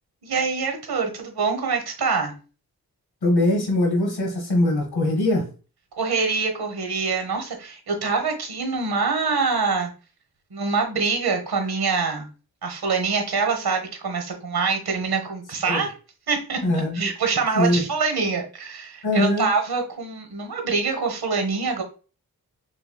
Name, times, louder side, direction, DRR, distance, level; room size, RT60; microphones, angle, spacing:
voice 1, 0.2-2.3 6.0-9.9 10.5-12.3 12.6-15.9 16.3-21.8, right 4 dB, 85° right, 1.1 m, -25 dB
voice 2, 3.2-5.5 15.7-15.8 16.6-17.1 17.5-17.8 19.0-19.5, left 1 dB, 90° left, 1.2 m, -21 dB
5.8 x 2.2 x 2.2 m
wide cardioid pair, 100°, 37 cm